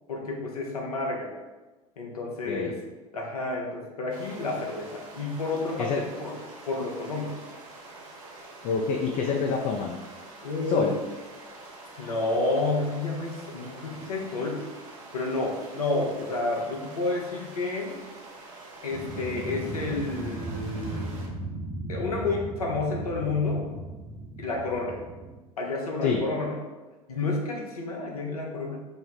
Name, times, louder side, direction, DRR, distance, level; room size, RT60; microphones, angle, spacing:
voice 1, 0.1-1.3 2.0-2.8 3.1-6.4 6.7-7.4 10.4-10.9 12.0-14.7 15.1-18.0 18.8-21.2 21.9-23.8 24.4-25.0 25.6-26.6 27.1-28.8, left 3 dB, 85° left, 0 dB, 0.6 m, -30 dB
voice 2, 2.5-2.8 5.8-6.0 8.6-10.0 10.7-10.9 26.0-26.3, left 5 dB, 45° left, 1 dB, 0.4 m, -26 dB
sound 1, 4.1-21.3, right 2 dB, 65° right, 0.7 m, -46 dB
sound 2, 18.9-25.4, right 2 dB, 20° right, 0.6 m, -37 dB
3.0 x 2.0 x 3.9 m, 1.2 s
figure-of-eight pair, 75°, 19 cm